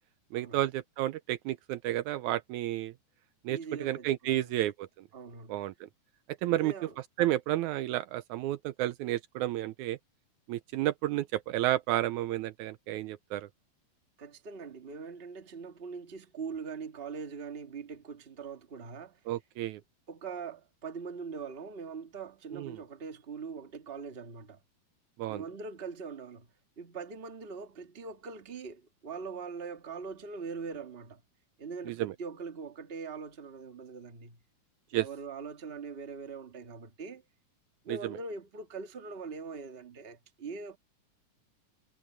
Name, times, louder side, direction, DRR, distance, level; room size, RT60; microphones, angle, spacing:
voice 1, 0.3-2.9 3.5-4.9 5.5-5.7 6.4-6.7 7.2-10.0 10.5-13.5 19.3-19.8 22.5-22.8 25.2-25.4 31.9-32.1 34.9-35.1 37.9-38.2, right 14 dB, 80° right, 1.9 m, -31 dB
voice 2, 3.5-4.6 5.1-5.6 6.5-7.0 14.2-19.2 20.1-24.6 25.3-26.5 26.8-31.2 31.6-34.4 34.9-37.2 37.8-40.8, right 5 dB, 25° right, 1.3 m, -42 dB
omnidirectional pair, 3.6 m